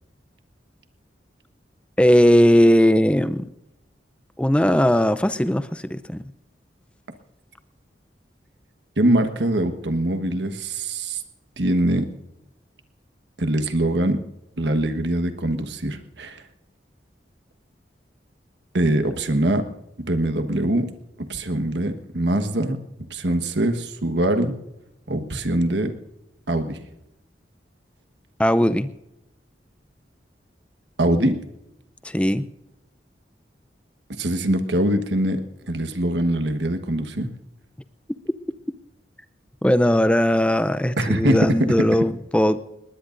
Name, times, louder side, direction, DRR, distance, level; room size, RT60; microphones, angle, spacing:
voice 1, 2.0-3.5 4.4-6.2 28.4-28.9 32.0-32.5 39.6-42.6, equal, 5° left, 13 dB, 0.5 m, -18 dB
voice 2, 9.0-11.2 11.6-12.1 13.4-14.2 14.6-16.4 18.7-19.7 20.0-20.9 21.3-22.8 23.1-24.5 25.1-25.9 26.5-26.8 31.0-31.4 34.2-35.4 35.7-37.3 41.0-41.4, right 1 dB, 75° right, 8 dB, 1.4 m, -23 dB
20.5 x 19.5 x 2.6 m, 0.85 s
head